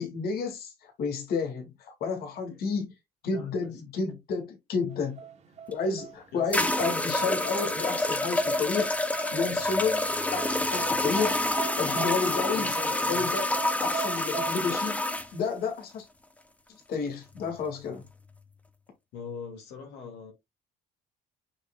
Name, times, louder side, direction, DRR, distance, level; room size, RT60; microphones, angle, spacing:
voice 1, 0.0-2.9 3.2-5.2 5.7-9.0 9.3-12.7 13.1-13.5 13.8-15.0 15.3-16.1 16.7-18.0, left 5 dB, 65° left, 2.4 m, -31 dB
voice 2, 3.3-3.8 6.3-6.7 12.5-13.2 19.1-20.3, left 5 dB, 85° left, 2.6 m, -42 dB
sound 1, 4.9-14.5, right 8 dB, 40° right, 2.0 m, -42 dB
sound 2, 5.7-5.8 6.5-15.3, left 1 dB, 10° left, 0.8 m, -28 dB
6.5 x 6.1 x 2.4 m
cardioid pair, 110°, 17 cm